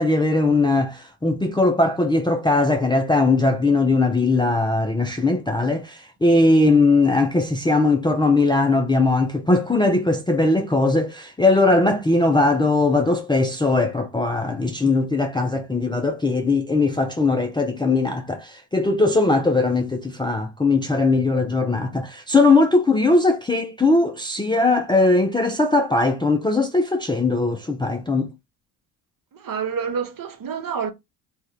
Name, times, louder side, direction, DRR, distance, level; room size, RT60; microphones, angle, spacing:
voice 1, 0.0-28.3, left 2 dB, 10° left, 0.5 m, -19 dB
voice 2, 29.3-30.9, right 6 dB, 45° right, 0.9 m, -28 dB
3.3 x 2.4 x 2.8 m
cardioid pair, 90°, 47 cm